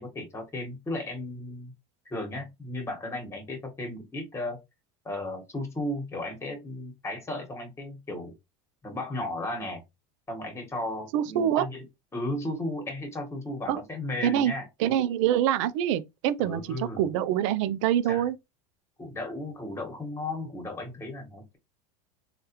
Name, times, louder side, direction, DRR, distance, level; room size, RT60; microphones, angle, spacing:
voice 1, 0.0-1.7 2.0-4.6 5.0-8.3 8.8-9.8 10.3-11.8 12.1-14.7 16.4-17.1 18.1-18.2 19.0-21.6, left 1 dB, 15° left, 1.3 m, -35 dB
voice 2, 11.1-11.7 13.7-13.8 14.2-14.5 14.8-18.4, right 11 dB, 75° right, 0.5 m, -25 dB
3.2 x 2.4 x 2.9 m
supercardioid pair, 110°, 16 cm